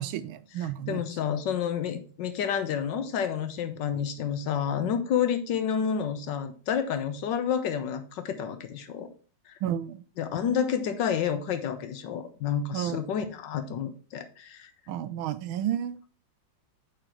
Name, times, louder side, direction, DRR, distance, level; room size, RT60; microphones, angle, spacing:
voice 1, 0.0-1.0 9.6-10.0 12.7-13.0 14.9-16.1, right 10 dB, 80° right, 13 dB, 1.4 m, -31 dB
voice 2, 0.9-9.1 9.5-9.6 10.2-14.7, left 8 dB, 65° left, 9 dB, 1.4 m, -29 dB
6.0 x 4.4 x 4.9 m, 0.40 s
omnidirectional pair, 2.3 m